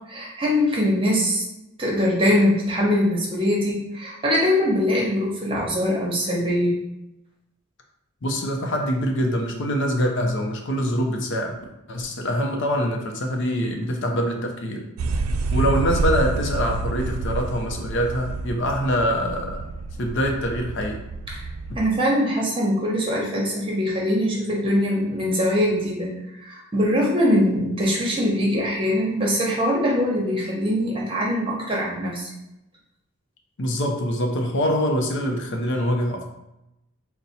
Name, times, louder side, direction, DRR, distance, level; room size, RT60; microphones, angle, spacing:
voice 1, 0.1-1.4 1.8-6.7 21.7-26.1 26.4-32.3, equal, 25° right, -3 dB, 1.0 m, -22 dB
voice 2, 8.2-11.6 11.9-14.9 15.5-19.7 20.0-21.0 33.6-36.3, equal, 60° left, 2 dB, 0.6 m, -24 dB
sound 1, 15.0-21.9, right 3 dB, 80° right, 0.3 m, -28 dB
4.1 x 2.2 x 4.1 m, 0.90 s
head